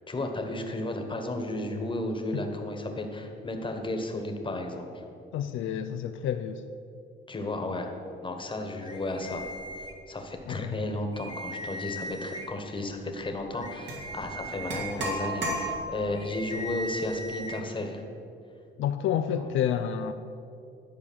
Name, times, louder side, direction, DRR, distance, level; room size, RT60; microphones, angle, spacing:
voice 1, 0.1-5.0 7.3-7.9 8.2-9.5 10.1-18.0 19.3-19.5, left 2 dB, 25° left, 4 dB, 1.4 m, -33 dB
voice 2, 5.3-6.6 10.5-10.8 15.0-15.1 18.8-20.1, left 9 dB, 80° left, 8 dB, 0.5 m, -29 dB
sound 1, 8.8-10.4 10.8-10.9 11.1-12.7 13.2-17.6, equal, 20° right, 1.1 m, -40 dB
sound 2, 13.9-14.0 14.7-16.2, right 1 dB, 65° right, 2.3 m, -32 dB
11.5 x 4.7 x 7.4 m, 2.6 s
cardioid pair, 90°, 20 cm